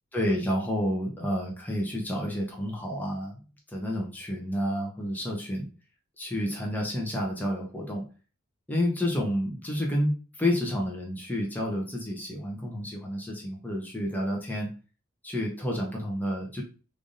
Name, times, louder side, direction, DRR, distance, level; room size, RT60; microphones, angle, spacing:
voice 1, 0.1-3.4 3.7-5.7 6.2-8.0 8.7-10.1 10.4-14.7 15.2-16.6, equal, 10° left, -1 dB, 0.8 m, -30 dB
3.3 x 2.6 x 3.8 m, 0.35 s
head